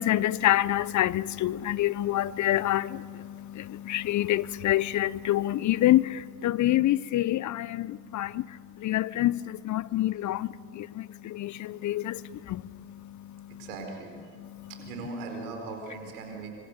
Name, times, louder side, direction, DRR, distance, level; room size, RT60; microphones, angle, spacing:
voice 1, 0.0-13.7 14.4-14.7, left 14 dB, 40° left, 0.6 m, -27 dB
voice 2, 13.6-14.1 14.7-16.5, right 3 dB, 80° right, 4.8 m, -38 dB
25.0 x 25.0 x 6.7 m
hypercardioid pair, 60°, 44 cm